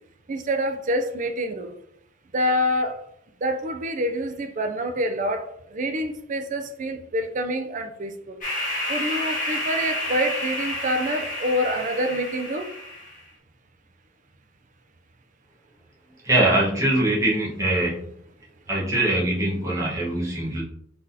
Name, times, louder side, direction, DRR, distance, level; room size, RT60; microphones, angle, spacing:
voice 1, 0.3-1.8 2.3-3.1 3.4-8.4 8.9-12.7, equal, 35° right, 6 dB, 0.5 m, -26 dB
sound 1, 8.4-13.2, left 1 dB, 40° left, 1.5 m, -30 dB
voice 2, 16.2-18.0 18.7-20.6, right 1 dB, 15° right, -6 dB, 1.2 m, -22 dB
4.1 x 3.6 x 2.7 m, 0.71 s
head